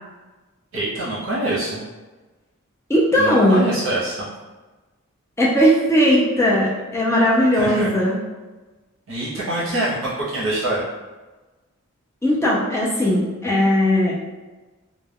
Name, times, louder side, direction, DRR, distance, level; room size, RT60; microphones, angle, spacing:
voice 1, 0.7-1.8 3.2-4.3 7.6-7.9 9.1-10.8, right 1 dB, 60° right, -7 dB, 0.7 m, -25 dB
voice 2, 2.9-3.6 5.4-8.2 12.2-14.1, equal, 10° left, -4 dB, 0.3 m, -18 dB
2.1 x 2.1 x 3.4 m, 1.2 s
head